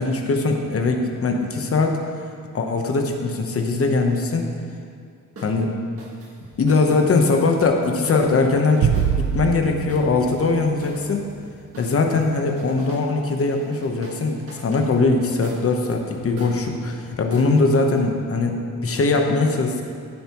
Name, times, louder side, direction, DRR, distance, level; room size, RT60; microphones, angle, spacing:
voice 1, 0.0-2.0 2.5-4.4 5.4-5.7 6.6-9.0 9.3-11.3 11.8-18.6 18.8-19.8, left 3 dB, 40° left, 3 dB, 1.0 m, -21 dB
sound 1, 5.4-5.6 6.0-9.3 9.9-11.4 11.7-13.1 13.3-17.5, right 1 dB, 40° right, 1.5 m, -42 dB
sound 2, 8.8-11.3, right 9 dB, 80° right, 0.5 m, -25 dB
15.5 x 7.0 x 3.0 m, 2.3 s
wide cardioid pair, 165°, 34 cm